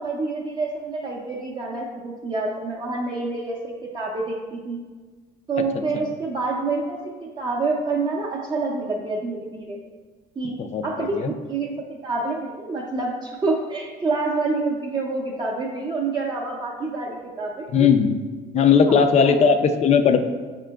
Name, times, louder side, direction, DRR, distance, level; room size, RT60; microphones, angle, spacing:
voice 1, 0.0-4.8 5.5-9.8 10.4-10.6 10.8-17.7 18.9-19.4, right 3 dB, 25° right, -3 dB, 0.5 m, -27 dB
voice 2, 10.6-11.3 17.7-18.1 18.5-20.2, left 6 dB, 40° left, 9 dB, 0.4 m, -18 dB
5.9 x 3.7 x 2.2 m, 1.4 s
cardioid pair, 110°, 17 cm